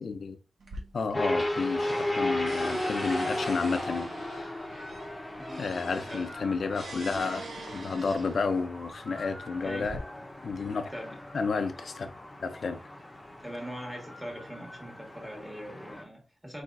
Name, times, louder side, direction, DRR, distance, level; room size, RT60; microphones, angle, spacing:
voice 1, 0.0-0.4 0.9-4.5 5.6-10.0 10.4-10.9 11.3-12.1 12.4-12.8, left 4 dB, 65° left, 0.6 m, -31 dB
sound 1, 0.6-1.5 1.8-8.6 9.4-10.0, right 2 dB, 80° right, 1.3 m, -44 dB
sound 2, 1.1-16.0, left 1 dB, 20° left, 1.0 m, -36 dB
voice 2, 5.4-5.7 5.9-6.3 9.6-9.9 10.9-11.2 13.4-16.6, equal, 5° right, 1.6 m, -41 dB
4.6 x 4.3 x 2.6 m
wide cardioid pair, 145°, 0 cm